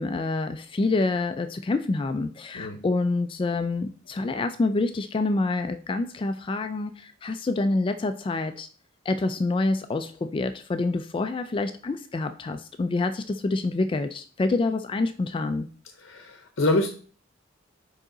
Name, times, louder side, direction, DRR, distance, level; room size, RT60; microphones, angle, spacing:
voice 1, 0.0-8.7 9.1-15.7, left 3 dB, 25° left, 9 dB, 0.3 m, -27 dB
voice 2, 16.0-16.9, left 2 dB, 65° left, 5 dB, 0.7 m, -26 dB
5.1 x 4.8 x 3.8 m, 0.42 s
head